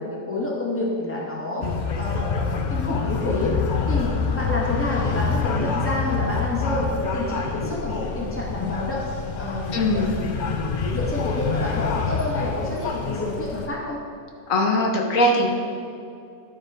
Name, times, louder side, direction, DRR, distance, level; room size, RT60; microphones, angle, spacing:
voice 1, 0.0-1.7 2.0-3.5 3.9-9.0 9.4-10.1 10.5-10.6 10.9-14.0, left 2 dB, 10° left, -4 dB, 1.5 m, -28 dB
sound 1, 1.6-13.7, left 5 dB, 90° left, 0.4 m, -27 dB
voice 2, 9.7-10.2 14.5-15.5, left 1 dB, 60° left, 1 dB, 1.4 m, -20 dB
12.0 x 4.4 x 5.0 m, 2.5 s
omnidirectional pair, 1.6 m